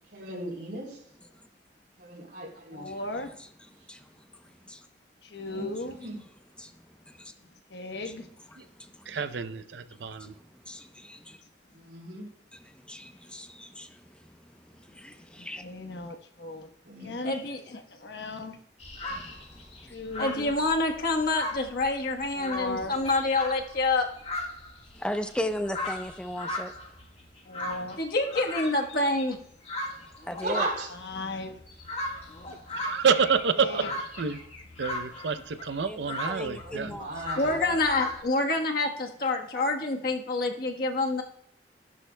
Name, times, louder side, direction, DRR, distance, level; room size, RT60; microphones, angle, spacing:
voice 1, 0.1-1.0 2.0-2.9 5.4-6.2 9.4-9.5 11.9-12.3 16.8-17.1 30.4-30.9 33.6-33.9 36.6-37.6, right 2 dB, 65° right, 3.4 m, -36 dB
voice 2, 2.7-3.3 5.2-6.0 7.7-8.3 15.4-16.7 17.0-17.4 17.9-18.6 19.9-20.5 22.3-23.0 27.4-28.0 30.9-31.6 33.6-33.9, left 2 dB, 75° left, 1.1 m, -37 dB
voice 3, 3.4-4.9 6.5-7.3 8.1-8.2 8.5-9.4 9.9-11.4 12.6-15.6 19.0-19.9 24.9-26.7 30.3-30.7 35.8-37.8, left 1 dB, 5° left, 0.7 m, -39 dB
voice 4, 9.1-10.3 32.5-33.8 34.2-34.4 34.8-36.9, right 5 dB, 85° right, 0.6 m, -28 dB
voice 5, 17.2-17.6 20.2-24.1 28.0-29.4 37.4-41.2, left 2 dB, 55° left, 1.3 m, -27 dB
sound 1, 18.8-38.2, left 1 dB, 35° left, 1.6 m, -38 dB
14.5 x 12.0 x 2.2 m
head